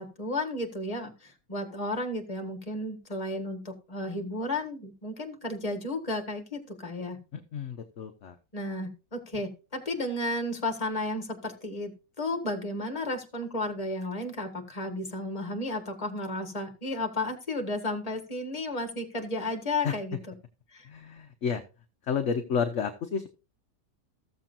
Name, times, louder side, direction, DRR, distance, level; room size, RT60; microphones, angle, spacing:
voice 1, 0.0-7.2 8.5-11.9 12.2-20.2 20.7-20.9, left 1 dB, 20° left, 6 dB, 1.7 m, -33 dB
voice 2, 7.3-8.3 19.8-19.9 20.9-21.6 22.1-23.3, left 6 dB, 50° left, 6 dB, 1.0 m, -31 dB
14.5 x 7.3 x 2.6 m, 0.31 s
omnidirectional pair, 1.9 m